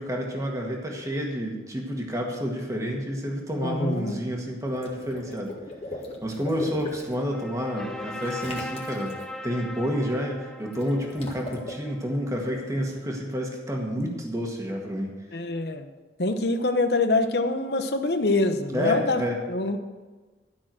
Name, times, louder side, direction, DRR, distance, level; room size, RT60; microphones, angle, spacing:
voice 1, 0.0-5.5 6.2-9.1 9.4-15.1 18.7-19.4, equal, 20° right, 0 dB, 1.7 m, -29 dB
voice 2, 3.6-4.2 15.3-15.9 16.2-19.8, left 2 dB, 65° left, 8 dB, 0.9 m, -25 dB
Water / Liquid, 4.7-7.1 8.2-9.2 10.7-11.7, left 1 dB, 35° left, 1.7 m, -39 dB
sound 1, 6.6-12.5, left 1 dB, 5° left, 0.8 m, -40 dB
12.0 x 6.2 x 7.6 m, 1.3 s
head